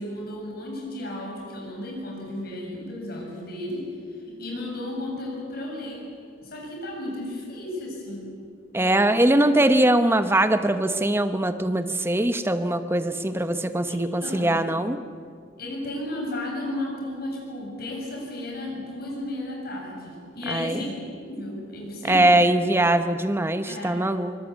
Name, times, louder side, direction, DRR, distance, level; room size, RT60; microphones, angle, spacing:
voice 1, 0.0-6.0 6.4-8.3 8.7-9.5 13.9-14.6 15.6-22.6 23.7-24.0, left 1 dB, 55° left, -1 dB, 7.7 m, -34 dB
voice 2, 8.7-15.0 20.5-20.8 22.1-24.4, right 1 dB, 15° right, 9 dB, 1.0 m, -21 dB
24.5 x 21.0 x 8.3 m, 2.3 s
head